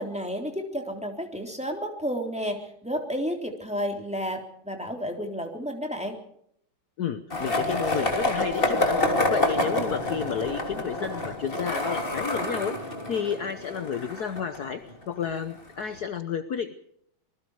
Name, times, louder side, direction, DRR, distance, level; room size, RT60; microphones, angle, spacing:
voice 1, 0.0-6.2, equal, 5° right, 2 dB, 3.4 m, -31 dB
voice 2, 7.0-9.0 9.3-16.8, left 7 dB, 55° left, 9 dB, 1.4 m, -31 dB
Skateboard, 7.3-15.2, left 1 dB, 25° left, 3.4 m, -28 dB
26.5 x 20.5 x 4.9 m, 0.70 s
omnidirectional pair, 2.3 m